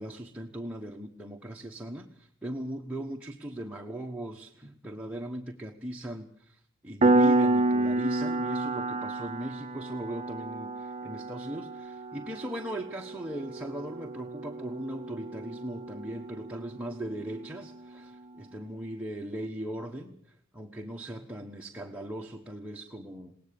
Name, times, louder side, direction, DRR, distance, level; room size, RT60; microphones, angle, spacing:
voice 1, 0.0-23.3, right 1 dB, 5° right, 0 dB, 1.2 m, -39 dB
Piano, 7.0-17.4, right 2 dB, 35° right, 0.8 m, -30 dB
21.0 x 18.0 x 6.9 m, 0.66 s
head